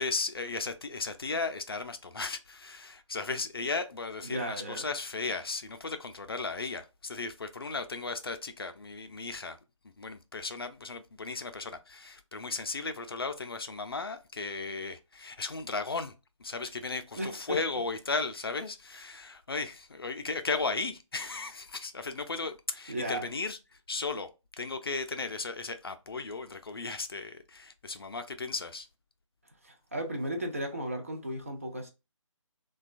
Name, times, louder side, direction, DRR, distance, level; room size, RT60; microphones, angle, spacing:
voice 1, 0.0-9.6 9.8-16.1 16.4-24.3 24.6-28.9, left 4 dB, 45° left, 0.4 m, -35 dB
voice 2, 4.2-4.9 17.2-17.6 22.9-23.3 29.6-31.9, right 1 dB, 25° right, 0.4 m, -35 dB
2.9 x 2.2 x 2.4 m
figure-of-eight pair, 155°, 17 cm